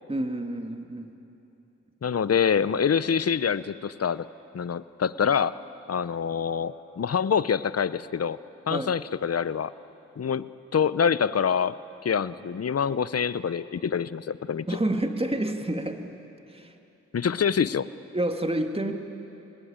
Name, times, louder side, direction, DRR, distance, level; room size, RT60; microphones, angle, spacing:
voice 1, 0.1-1.1 8.7-9.0 14.7-16.1 16.5-16.7 18.1-19.0, right 1 dB, 20° right, 5 dB, 2.1 m, -29 dB
voice 2, 2.0-4.3 4.5-5.5 5.9-8.4 8.7-9.7 10.2-14.7 17.1-17.9, left 7 dB, 55° left, 16 dB, 0.7 m, -26 dB
26.5 x 20.0 x 8.8 m, 2.9 s
cardioid pair, 45°, 30 cm